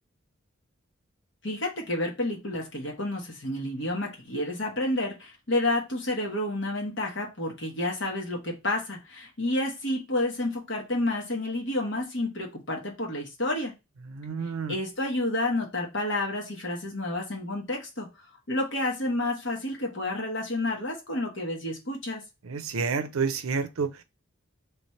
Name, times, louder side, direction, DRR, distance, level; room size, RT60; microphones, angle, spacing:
voice 1, 1.4-13.7 14.7-22.2, left 1 dB, 60° left, 1.3 m, -30 dB
voice 2, 14.1-14.7 22.5-23.9, right 5 dB, 85° right, 0.6 m, -29 dB
3.2 x 3.2 x 4.2 m
head